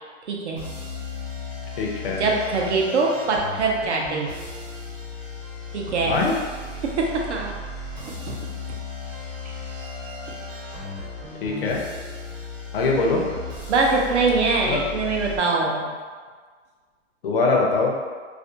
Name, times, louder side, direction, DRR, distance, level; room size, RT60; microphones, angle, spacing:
voice 1, 0.3-0.6 2.2-4.3 5.7-6.2 6.8-7.5 8.0-8.5 9.4-9.5 13.7-15.9, right 3 dB, 60° right, -1 dB, 0.6 m, -23 dB
sound 1, 0.6-15.4, left 2 dB, 35° right, 0.9 m, -35 dB
voice 2, 1.8-2.2 6.0-6.4 11.4-11.8 12.7-13.2 14.6-14.8 17.2-17.9, left 3 dB, 50° left, -1 dB, 0.5 m, -22 dB
2.4 x 2.1 x 2.7 m, 1.5 s
hypercardioid pair, 170°, 39 cm